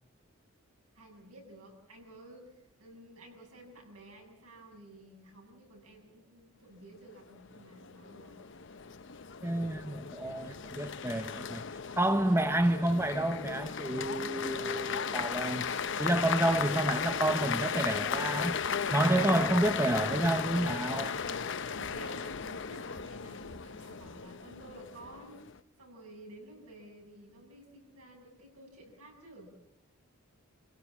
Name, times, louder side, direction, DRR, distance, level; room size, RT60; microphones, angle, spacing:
voice 1, 0.9-8.5 20.6-25.4 25.8-29.5, right 1 dB, 85° right, 7.6 m, -52 dB
sound 1, 7.3-25.6, left 6 dB, 55° left, 0.7 m, -36 dB
voice 2, 9.4-11.6 12.0-18.6 18.9-21.1, right 1 dB, 10° right, 0.8 m, -29 dB
28.5 x 16.5 x 7.3 m
head